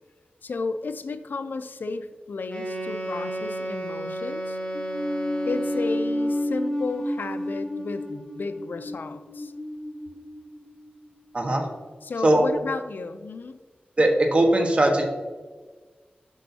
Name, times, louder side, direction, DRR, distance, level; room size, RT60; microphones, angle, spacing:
voice 1, 0.4-4.6 5.5-9.5 12.0-13.6, left 3 dB, 70° left, 10 dB, 0.4 m, -33 dB
Wind instrument woodwind instrument, 2.5-6.6, right 1 dB, 30° left, 1.7 m, -32 dB
sound 1, 4.7-11.1, left 1 dB, 15° left, 1.2 m, -31 dB
voice 2, 11.3-11.7 12.2-12.4 14.0-15.1, right 1 dB, 35° right, 2 dB, 1.3 m, -20 dB
8.2 x 5.4 x 2.8 m, 1.4 s
wide cardioid pair, 70°, 3 cm